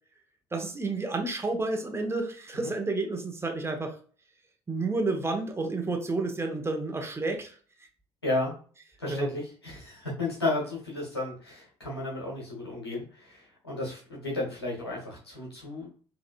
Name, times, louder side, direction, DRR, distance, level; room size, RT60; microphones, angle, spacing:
voice 1, 0.5-4.0 4.7-7.6 9.1-9.3, right 3 dB, 20° right, 3 dB, 1.0 m, -30 dB
voice 2, 8.2-8.5 9.0-15.9, left 2 dB, 85° left, -4 dB, 1.4 m, -33 dB
4.9 x 3.2 x 2.4 m, 0.42 s
figure-of-eight pair, 50°, 13 cm